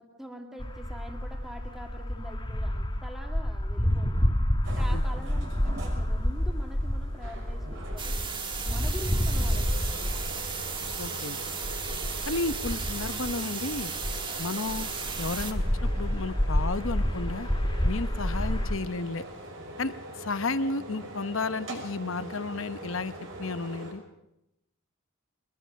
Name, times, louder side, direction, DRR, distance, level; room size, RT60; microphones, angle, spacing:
voice 1, 0.0-4.3 4.8-8.2 8.7-10.3, equal, ahead, 2 dB, 1.9 m, -44 dB
sound 1, 0.6-14.4 14.7-18.8, equal, 20° left, 1.2 m, -29 dB
sound 2, 4.6-23.9, right 1 dB, 60° right, 6.1 m, -42 dB
sound 3, 8.0-15.5, right 5 dB, 20° right, 1.5 m, -35 dB
voice 2, 11.0-11.4 12.3-13.9 14.4-14.9 15.2-17.5 17.8-19.2 19.8-23.1 23.4-24.0, left 3 dB, 65° left, 12 dB, 0.9 m, -32 dB
22.5 x 21.5 x 6.5 m, 0.86 s
head